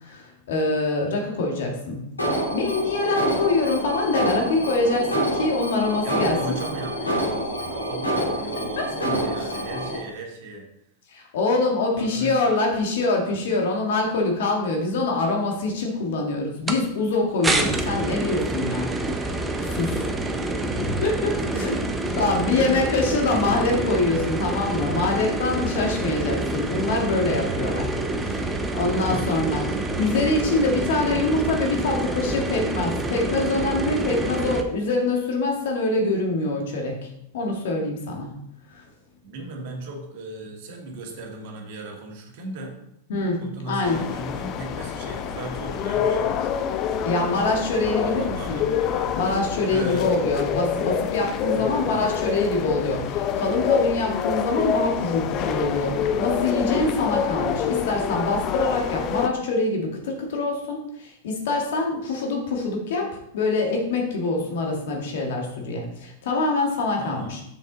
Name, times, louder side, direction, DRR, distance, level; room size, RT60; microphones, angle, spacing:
voice 1, 0.0-2.0 2.5-6.6 8.8-8.9 11.1-19.3 19.6-20.0 20.8-21.7 22.2-28.0 28.2-38.3 38.7-38.8 43.1-44.0 47.0-48.6 49.2-67.4, left 2 dB, 55° left, 1 dB, 2.0 m, -25 dB
Alarm, 2.2-10.0, equal, 80° left, 2.4 m, -27 dB
voice 2, 6.0-10.7 11.9-12.5 20.0-21.0 21.4-22.8 23.1-23.4 29.1-29.6 39.2-42.8 43.4-46.5 48.0-48.8 49.7-50.1 51.5-52.3 67.0-67.4, right 2 dB, 50° right, 1 dB, 1.8 m, -37 dB
sound 1, 16.7-16.8 17.4-34.6, right 2 dB, 10° right, 0.9 m, -27 dB
sound 2, 43.8-59.3, left 8 dB, 35° left, 0.6 m, -26 dB
7.0 x 6.5 x 4.0 m, 0.79 s
figure-of-eight pair, 90°, 0 cm